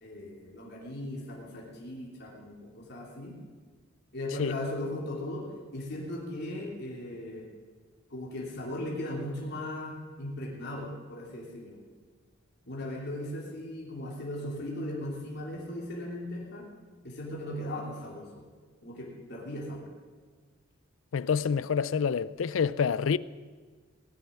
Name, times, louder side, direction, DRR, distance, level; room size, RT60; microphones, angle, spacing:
voice 1, 0.0-3.4 4.1-7.5 8.1-11.8 12.7-16.6 17.0-18.4 18.8-19.9, left 1 dB, 60° left, 3.0 m, -38 dB
voice 2, 21.1-23.2, left 6 dB, 80° left, 0.4 m, -27 dB
19.0 x 6.9 x 9.8 m
head